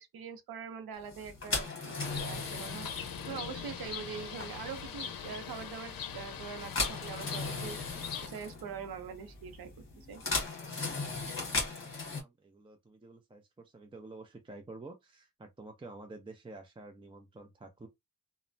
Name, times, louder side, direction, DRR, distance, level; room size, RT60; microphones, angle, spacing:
voice 1, 0.0-2.9 3.2-9.7 10.0-10.2, right 6 dB, 70° right, 0.7 m, -43 dB
sound 1, 1.1-12.2, left 3 dB, 35° left, 1.4 m, -38 dB
Bird, 2.0-8.3, left 7 dB, 65° left, 0.6 m, -41 dB
voice 2, 10.6-17.9, right 2 dB, 15° right, 0.4 m, -50 dB
3.1 x 2.0 x 2.6 m
wide cardioid pair, 130°, 37 cm